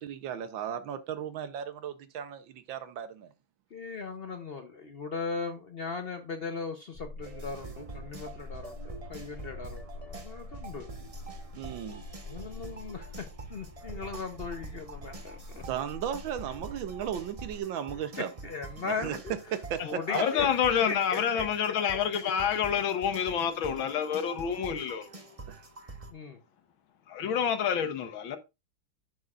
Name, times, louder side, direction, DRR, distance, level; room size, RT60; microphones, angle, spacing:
voice 1, 0.0-3.3 11.6-12.1 15.7-18.3 19.0-19.2 19.5-19.8 20.1-20.2 25.5-25.6, right 9 dB, 70° right, 1.5 m, -35 dB
voice 2, 3.7-10.9 12.2-15.6 18.2-19.3 19.8-20.5 20.9-21.5 22.2-22.3 26.1-26.4, left 4 dB, 90° left, 0.5 m, -38 dB
sound 1, 6.9-17.6, left 2 dB, 15° left, 2.0 m, -45 dB
sound 2, 7.2-26.1, right 3 dB, 30° right, 0.6 m, -46 dB
voice 3, 20.1-25.1 27.1-28.4, left 8 dB, 70° left, 1.8 m, -28 dB
11.0 x 7.9 x 2.4 m
omnidirectional pair, 2.3 m